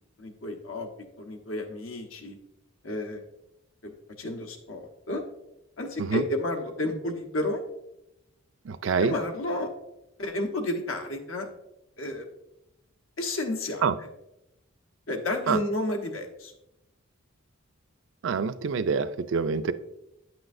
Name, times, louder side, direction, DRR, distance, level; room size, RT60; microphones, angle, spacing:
voice 1, 0.2-0.9 1.2-2.4 2.8-3.2 3.8-3.9 4.2-5.2 5.8-7.6 9.0-9.7 10.2-11.5 12.0-12.3 13.2-14.1 15.1-16.5, left 1 dB, 75° left, 4 dB, 1.1 m, -31 dB
voice 2, 8.7-9.1 13.8-13.9 15.5-15.6 18.2-19.7, right 5 dB, 60° right, 12 dB, 0.4 m, -26 dB
9.1 x 6.0 x 2.6 m, 0.86 s
head